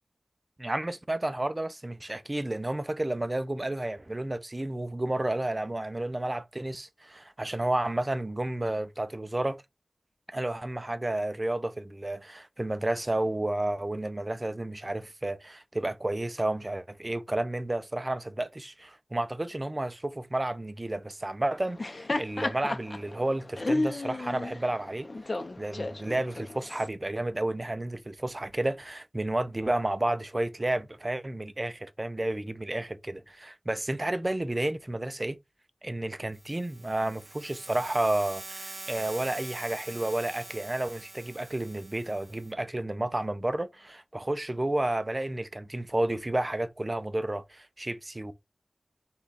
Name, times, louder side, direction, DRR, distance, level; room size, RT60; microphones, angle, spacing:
voice 1, 0.6-9.6 10.3-25.1 25.6-35.4 35.8-48.3, right 1 dB, 30° right, 0.5 m, -31 dB
Laughter, 21.6-26.9, left 2 dB, 50° left, 0.7 m, -33 dB
sound 1, 36.3-42.5, right 2 dB, 55° right, 0.9 m, -45 dB
5.4 x 2.4 x 4.0 m
wide cardioid pair, 65°, 0 cm